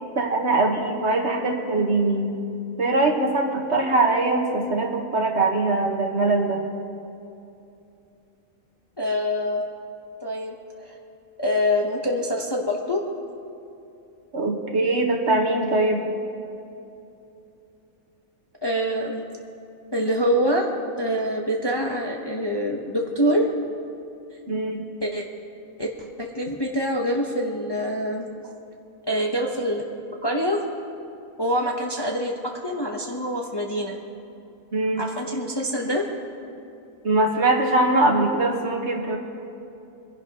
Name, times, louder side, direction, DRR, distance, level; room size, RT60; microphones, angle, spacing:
voice 1, 0.1-2.3 2.8-6.6 14.3-16.0 24.5-24.8 34.7-35.1 37.0-39.2, right 2 dB, 55° right, 1 dB, 1.5 m, -22 dB
voice 2, 9.0-9.6 10.2-11.0 11.4-13.0 18.6-19.2 19.9-20.7 21.0-23.5 25.0-25.2 25.8-28.5 29.1-29.8 30.2-30.6 31.4-34.0 35.0-36.0, equal, 20° left, 0 dB, 0.8 m, -25 dB
24.0 x 11.0 x 2.9 m, 2.7 s
omnidirectional pair, 1.5 m